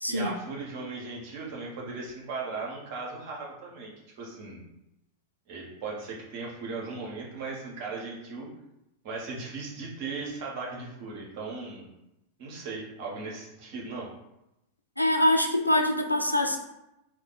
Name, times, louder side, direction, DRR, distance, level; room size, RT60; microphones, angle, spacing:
voice 1, 0.1-4.6 5.5-8.5 9.0-11.9 12.4-14.1, right 3 dB, 45° right, -3 dB, 1.0 m, -37 dB
voice 2, 15.0-16.6, left 1 dB, 90° left, 3 dB, 0.4 m, -24 dB
2.6 x 2.3 x 4.0 m, 0.89 s
figure-of-eight pair, 90°, 0 cm